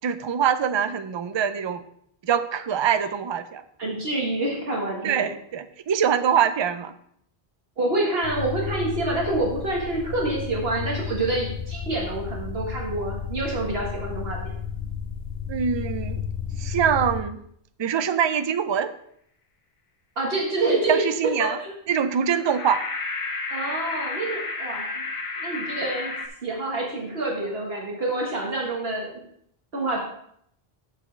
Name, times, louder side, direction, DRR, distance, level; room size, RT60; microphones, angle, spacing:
voice 1, 0.0-1.8 2.2-3.6 5.0-6.9 15.5-16.2 16.6-17.4 17.8-18.9 20.9-21.6 21.9-22.8, right 8 dB, 50° right, 11 dB, 0.3 m, -24 dB
voice 2, 3.8-5.3 7.8-14.5 20.1-21.0 21.4-21.7 23.5-24.9 25.4-26.1 26.4-29.2 29.7-30.0, right 2 dB, 70° right, -2 dB, 1.7 m, -27 dB
sound 1, 8.2-17.2, left 7 dB, 80° left, 1.1 m, -33 dB
sound 2, 22.3-26.3, left 3 dB, 35° left, 0.7 m, -31 dB
8.4 x 7.0 x 3.2 m, 0.69 s
omnidirectional pair, 1.0 m